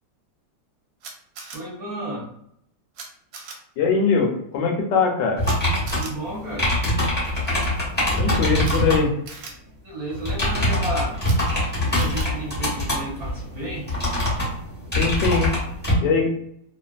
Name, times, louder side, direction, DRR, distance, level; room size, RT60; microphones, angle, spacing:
Camera, 1.0-1.6 2.9-3.0 3.3-3.5 5.4-5.6 5.9-6.1 8.6-8.7 9.3-9.5 11.2-11.4 12.0-12.3, right 4 dB, 75° right, 1.2 m, -37 dB
voice 1, 1.5-2.3 5.9-6.7 9.8-11.2 11.8-13.9, right 1 dB, 55° right, -5 dB, 1.1 m, -32 dB
voice 2, 3.8-5.4 8.1-9.1 15.0-15.5 16.0-16.3, left 5 dB, 70° left, 1 dB, 1.2 m, -21 dB
sound 1, 5.4-9.1 10.1-16.0, left 1 dB, 10° left, 0.5 m, -24 dB
3.2 x 2.3 x 2.3 m, 0.71 s
omnidirectional pair, 2.2 m